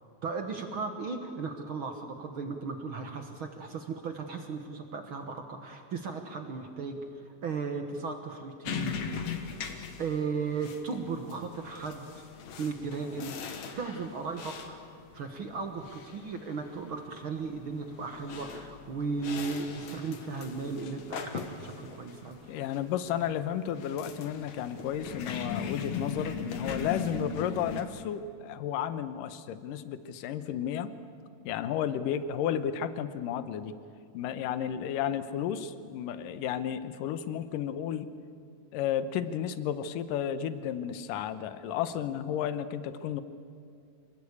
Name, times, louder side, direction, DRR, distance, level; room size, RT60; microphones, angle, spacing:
voice 1, 0.2-9.0 10.0-12.2 12.6-14.8 15.1-22.5, right 4 dB, 55° right, 5 dB, 1.6 m, -36 dB
sound 1, 8.6-27.8, left 6 dB, 60° left, 2.6 m, -40 dB
voice 2, 22.5-30.9 31.5-33.8 34.1-38.1 38.7-43.2, left 9 dB, 75° left, 12 dB, 2.5 m, -32 dB
26.5 x 19.5 x 8.5 m, 2.4 s
omnidirectional pair, 4.0 m